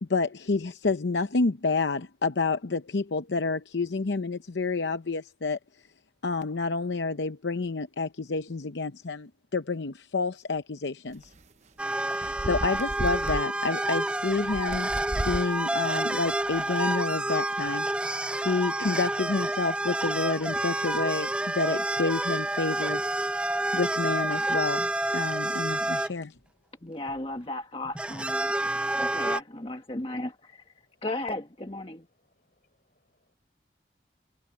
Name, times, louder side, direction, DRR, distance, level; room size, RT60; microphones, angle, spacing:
voice 1, 0.1-5.6 6.2-11.3 12.1-14.9 15.2-17.9 18.3-21.3 21.5-23.0 23.7-26.3, left 3 dB, 80° left, 0.7 m, -29 dB
sound 1, 11.2-11.4 12.2-13.4 14.3-15.5 16.2-16.6, right 1 dB, 40° right, 0.9 m, -34 dB
sound 2, 11.8-26.1 27.1-27.2 27.8-29.4, right 1 dB, 5° right, 0.3 m, -29 dB
voice 2, 26.8-30.7 31.0-32.1, left 2 dB, 30° left, 1.4 m, -36 dB
voice 3, 31.9-33.3, left 2 dB, 50° left, 4.8 m, -72 dB
head